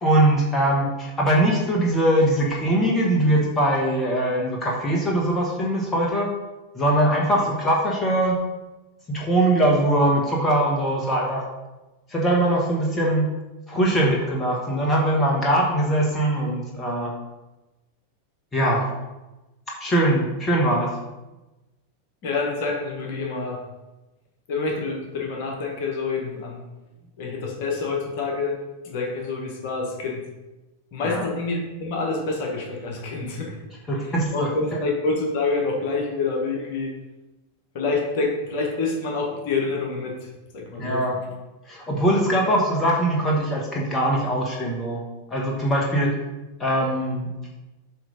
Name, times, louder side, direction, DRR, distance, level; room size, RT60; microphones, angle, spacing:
voice 1, 0.0-6.3 6.7-8.4 9.1-11.4 12.1-13.3 13.7-17.1 18.5-18.9 19.8-20.9 31.0-31.3 33.9-34.5 40.8-41.2 41.7-45.0 45.3-46.1 46.6-47.3, right 1 dB, 20° left, -2 dB, 1.3 m, -21 dB
voice 2, 22.2-23.6 24.5-26.6 27.2-28.6 28.8-30.2 30.9-33.6 34.0-36.9 37.7-40.3 40.5-41.0, left 3 dB, 50° left, 0 dB, 1.5 m, -27 dB
7.8 x 3.3 x 5.2 m, 1.1 s
figure-of-eight pair, 90°, 0 cm